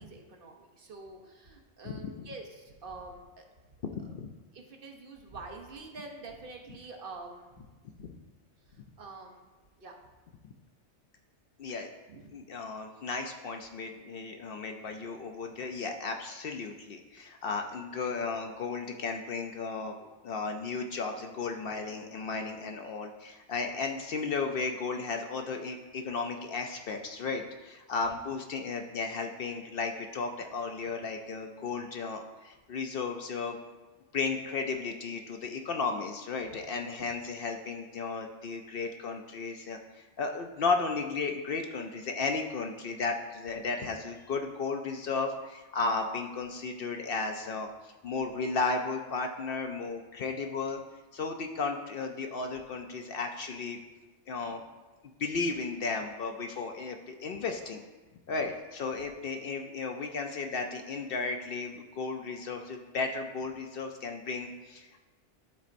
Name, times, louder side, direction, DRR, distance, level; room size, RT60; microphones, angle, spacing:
voice 1, 0.0-3.5 4.0-4.1 4.5-7.6 9.0-9.4 9.8-9.9 12.1-12.3, right 3 dB, 55° right, 2 dB, 0.9 m, -46 dB
voice 2, 1.9-2.3 3.8-4.3 8.0-8.1 11.6-11.9 12.3-19.9 20.2-33.6 34.1-50.8 51.1-53.8 54.3-54.6 55.2-57.8 58.3-65.0, left 4 dB, 60° left, 4 dB, 0.7 m, -34 dB
11.5 x 4.1 x 2.5 m, 1.2 s
omnidirectional pair, 1.2 m